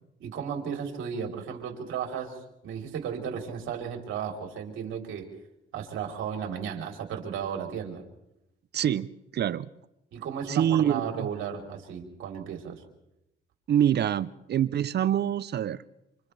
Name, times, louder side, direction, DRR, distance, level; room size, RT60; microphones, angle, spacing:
voice 1, 0.2-2.4 2.6-5.3 5.7-8.0 10.1-12.8, right 7 dB, 80° right, 1 dB, 3.8 m, -34 dB
voice 2, 8.7-9.1 9.3-9.7 10.5-11.3 13.7-15.8, right 10 dB, 55° right, 16 dB, 0.7 m, -25 dB
28.0 x 27.0 x 3.4 m, 0.86 s
cardioid pair, 90°, 20 cm